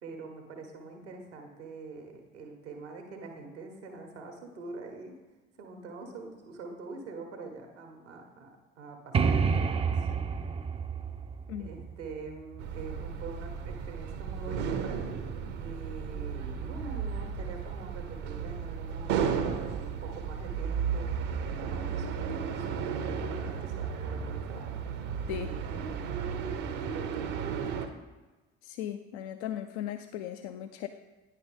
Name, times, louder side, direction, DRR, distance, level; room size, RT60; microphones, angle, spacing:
voice 1, 0.0-5.2 5.6-8.5 8.8-10.1 11.5-15.2 15.6-21.2 21.6-24.7 25.3-26.0 26.3-27.8, right 3 dB, 80° right, 4 dB, 1.1 m, -45 dB
sound 1, 9.1-12.8, right 5 dB, 20° right, 0.4 m, -29 dB
sound 2, 12.6-27.9, right 7 dB, 60° right, 0.8 m, -34 dB
voice 2, 28.6-30.9, left 11 dB, 65° left, 8 dB, 0.5 m, -37 dB
9.4 x 5.4 x 3.8 m, 1.2 s
figure-of-eight pair, 50°, 35 cm